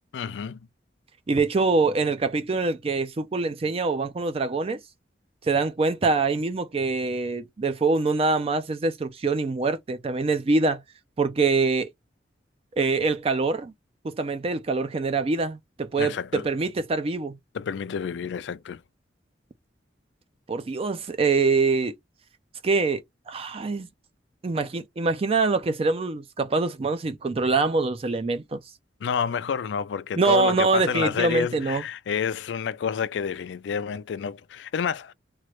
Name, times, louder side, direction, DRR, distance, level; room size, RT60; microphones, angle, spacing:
voice 1, 0.1-0.6 16.0-16.5 17.5-18.8 29.0-35.1, left 7 dB, 70° left, 0.3 m, -29 dB
voice 2, 1.3-4.8 5.4-10.8 11.2-11.9 12.8-13.7 14.0-17.4 20.5-21.9 22.6-23.9 24.4-28.6 30.2-31.8, right 3 dB, 30° right, 0.4 m, -24 dB
3.1 x 2.4 x 3.0 m
head